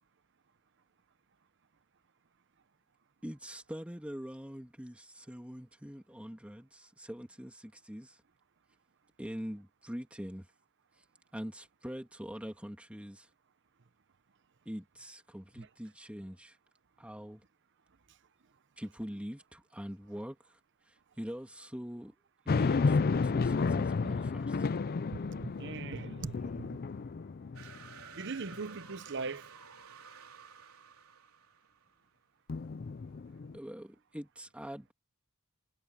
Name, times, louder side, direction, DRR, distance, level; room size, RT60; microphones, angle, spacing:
voice 1, 3.2-8.2 9.2-10.5 11.3-13.3 14.6-16.6 17.0-17.4 18.8-20.6 20.8-22.1 22.4-24.7 33.5-34.9, equal, 5° right, 2.7 m, -44 dB
sound 1, 22.5-28.0 28.5-28.6 32.5-33.6, left 4 dB, 45° left, 0.4 m, -31 dB
voice 2, 25.0-27.0 28.1-29.5, right 4 dB, 55° right, 0.9 m, -41 dB
sound 2, 27.5-32.0, right 6 dB, 85° right, 3.1 m, -52 dB
head